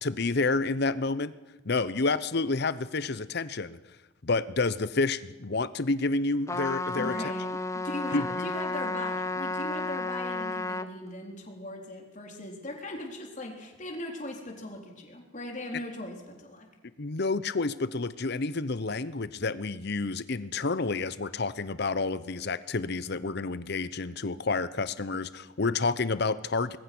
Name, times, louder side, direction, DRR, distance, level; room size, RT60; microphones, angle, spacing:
voice 1, 0.0-1.3 1.6-3.8 4.2-7.1 8.1-8.5 17.0-26.8, left 3 dB, 55° left, 15 dB, 0.8 m, -29 dB
Trumpet, 6.5-10.9, left 2 dB, 15° left, 0.8 m, -32 dB
voice 2, 7.0-16.7, left 1 dB, 40° left, 1 dB, 3.9 m, -39 dB
25.5 x 21.0 x 6.2 m, 1.1 s
head